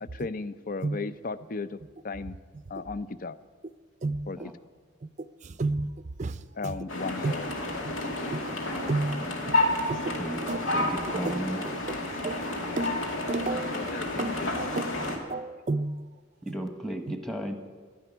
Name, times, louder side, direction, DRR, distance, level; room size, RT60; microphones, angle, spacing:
voice 1, 0.0-1.8 2.0-2.4 2.7-3.4 4.3-4.4 6.6-7.5 13.7-14.7, left 4 dB, 45° left, 14 dB, 0.5 m, -35 dB
voice 2, 5.0-5.9 6.2-6.7 7.2-7.3 7.8-8.0 8.3-8.6 8.9-9.6 9.9-10.2 10.5-10.6 11.1-12.5 12.8-13.8 14.2-16.1 16.5-16.6 17.1-17.2, right 2 dB, 35° right, 12 dB, 0.5 m, -32 dB
sound 1, 6.9-15.2, left 1 dB, 85° left, 2.3 m, -30 dB
voice 3, 10.7-11.6 16.4-17.6, right 1 dB, ahead, 5 dB, 1.2 m, -34 dB
12.5 x 10.5 x 10.0 m, 1.5 s
head